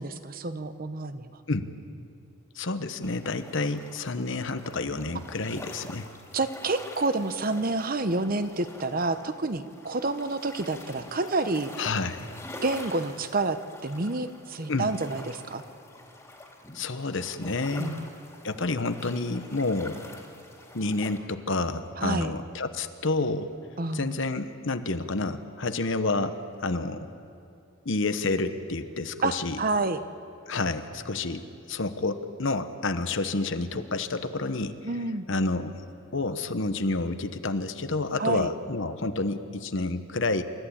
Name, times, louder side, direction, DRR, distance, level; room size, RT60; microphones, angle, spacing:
voice 1, 0.0-1.3 6.3-11.7 12.6-13.6 13.8-15.6 17.8-18.1 22.0-22.3 23.8-24.2 29.2-30.0 34.8-35.2 38.2-38.5, right 3 dB, 40° right, 10 dB, 0.8 m, -29 dB
voice 2, 2.6-6.1 11.8-12.3 14.7-14.9 16.7-17.9 18.4-20.0 20.7-23.5 23.9-27.1 27.8-29.6 30.5-34.7 35.3-35.7 36.1-40.4, left 3 dB, 60° left, 10 dB, 1.0 m, -29 dB
sound 1, 3.0-21.2, left 1 dB, 15° left, 2.4 m, -46 dB
28.0 x 14.0 x 8.7 m, 2.6 s
head